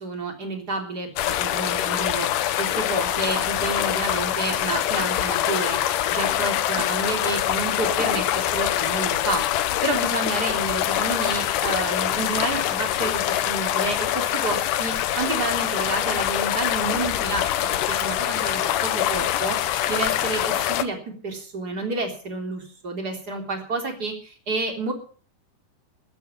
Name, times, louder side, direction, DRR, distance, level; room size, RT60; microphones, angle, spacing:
voice 1, 0.0-5.8 6.1-17.5 17.9-19.6 19.9-21.0 21.2-24.9, right 3 dB, 30° right, 3 dB, 3.8 m, -30 dB
sound 1, 1.2-20.8, left 12 dB, 90° left, 2.5 m, -24 dB
13.5 x 12.0 x 7.0 m, 0.43 s
omnidirectional pair, 3.7 m